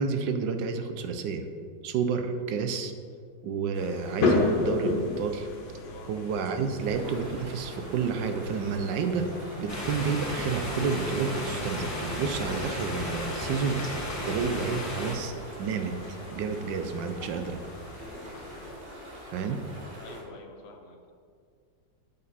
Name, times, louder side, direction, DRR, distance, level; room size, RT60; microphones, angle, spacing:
voice 1, 0.0-1.4 1.8-2.9 3.4-5.5 6.1-9.3 9.6-14.0 14.2-15.3 15.6-15.9 16.3-17.6 19.3-19.6, right 5 dB, 85° right, 7 dB, 1.4 m, -30 dB
sound 1, 3.7-18.7, left 3 dB, 85° left, 1.8 m, -35 dB
sound 2, 6.8-20.2, equal, 35° right, 1.6 m, -44 dB
sound 3, 9.7-15.2, left 1 dB, 10° left, 1.3 m, -34 dB
voice 2, 20.0-21.1, left 3 dB, 45° left, 3 dB, 0.9 m, -50 dB
8.3 x 6.8 x 4.2 m, 2.2 s
omnidirectional pair, 1.9 m